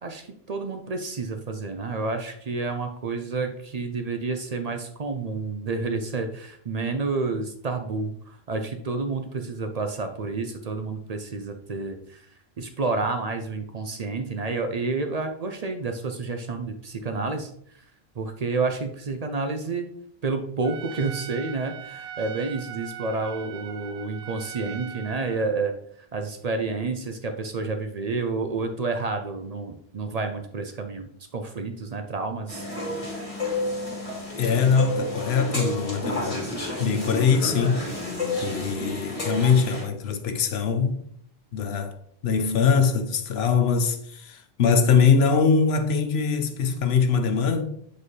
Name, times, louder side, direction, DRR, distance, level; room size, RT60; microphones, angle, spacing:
voice 1, 0.0-12.3 12.6-17.5 18.2-19.9 20.2-25.7 26.1-32.7, right 3 dB, 45° right, 0.6 m, -29 dB
Trumpet, 20.6-25.5, right 9 dB, 80° right, 0.8 m, -40 dB
sound 1, 32.5-39.8, left 2 dB, 35° left, 1.8 m, -31 dB
voice 2, 34.4-36.5 36.8-37.9 38.4-41.1 41.5-42.0 42.2-47.6, left 5 dB, 85° left, 1.0 m, -22 dB
7.5 x 4.1 x 3.2 m
omnidirectional pair, 1.0 m